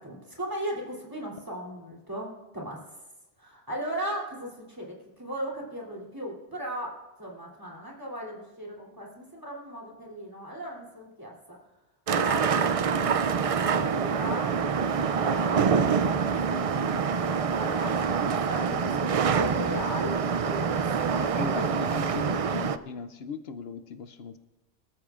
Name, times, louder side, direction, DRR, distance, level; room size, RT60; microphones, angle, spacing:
voice 1, 0.0-2.8 3.4-11.6 12.1-14.7 15.2-17.3 17.6-21.7, equal, 20° right, -3 dB, 3.2 m, -38 dB
sound 1, 12.1-22.8, right 6 dB, 55° right, 0.4 m, -26 dB
voice 2, 21.2-24.4, left 5 dB, 75° left, 10 dB, 0.9 m, -38 dB
24.0 x 13.5 x 2.5 m, 1.0 s
omnidirectional pair, 1.1 m